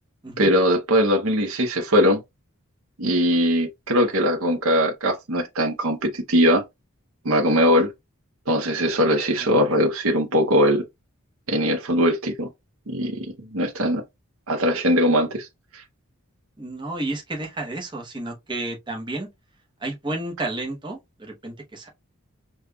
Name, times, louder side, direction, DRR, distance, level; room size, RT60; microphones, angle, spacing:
voice 1, 0.4-2.2 3.0-6.6 7.2-7.9 8.5-10.8 11.5-12.5 12.9-14.0 14.5-15.5, equal, 70° right, 0.8 m, -20 dB
voice 2, 9.3-9.8 16.6-19.3 19.8-21.9, right 2 dB, 20° right, 0.8 m, -32 dB
5.1 x 2.2 x 2.2 m
head